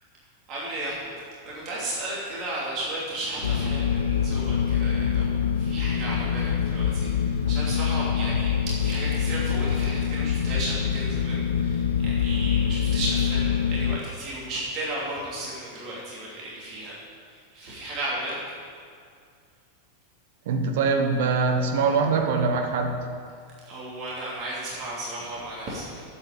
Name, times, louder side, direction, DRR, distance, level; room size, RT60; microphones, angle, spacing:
voice 1, 0.5-1.1 1.4-17.0 17.3-18.4 23.6-26.0, right 1 dB, 35° right, -6 dB, 2.8 m, -34 dB
sound 1, 3.4-14.0, left 7 dB, 75° left, 0.6 m, -25 dB
voice 2, 20.5-23.1, right 4 dB, 55° right, 4 dB, 1.3 m, -23 dB
8.5 x 8.0 x 8.9 m, 2.2 s
figure-of-eight pair, 90°, 0 cm